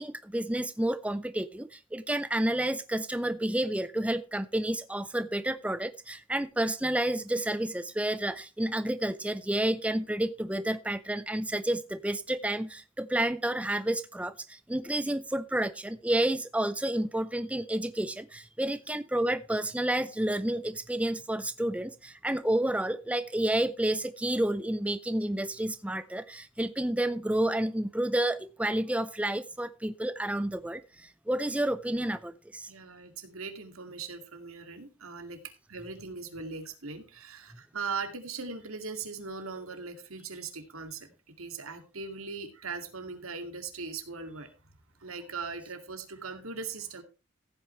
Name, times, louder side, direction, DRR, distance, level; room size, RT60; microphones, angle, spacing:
voice 1, 0.0-32.7, right 1 dB, 5° right, 0.5 m, -30 dB
voice 2, 32.7-35.4 35.7-41.1 41.4-44.5 45.0-47.0, right 4 dB, 85° right, 2.4 m, -39 dB
15.0 x 8.9 x 3.2 m
head